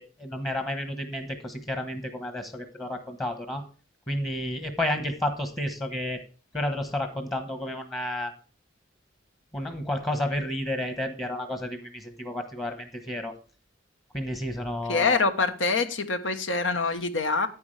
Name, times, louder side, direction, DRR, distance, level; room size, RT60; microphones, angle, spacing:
voice 1, 0.0-3.6 4.1-6.2 6.5-8.3 9.5-13.3 14.1-15.2, left 1 dB, 20° left, 7 dB, 1.2 m, -31 dB
voice 2, 14.9-17.5, left 4 dB, 70° left, 9 dB, 1.3 m, -25 dB
9.6 x 9.5 x 3.3 m, 0.37 s
head